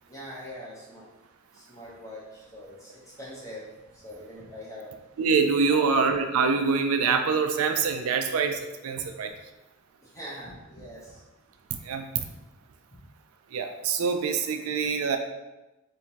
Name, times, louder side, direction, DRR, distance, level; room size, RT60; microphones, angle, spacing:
voice 1, 0.1-1.1 1.5-4.9 5.7-5.9 10.0-11.2 11.9-12.0, equal, 15° left, -6 dB, 0.8 m, -43 dB
voice 2, 5.2-9.3 11.8-12.2 13.5-15.2, right 5 dB, 85° right, 6 dB, 0.4 m, -25 dB
3.6 x 2.7 x 4.4 m, 1.0 s
head